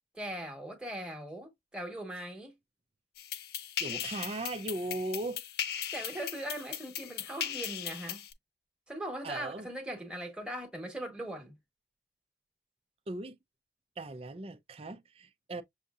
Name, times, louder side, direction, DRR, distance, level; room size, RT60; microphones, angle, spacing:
voice 1, 0.1-2.5 5.9-8.2 8.9-11.6, right 1 dB, 5° right, 1.1 m, -40 dB
sound 1, 3.2-8.3, left 10 dB, 60° left, 0.4 m, -38 dB
voice 2, 3.8-5.4 9.2-9.7 13.1-13.4 14.0-15.6, right 2 dB, 35° right, 0.4 m, -38 dB
6.3 x 2.7 x 2.4 m
head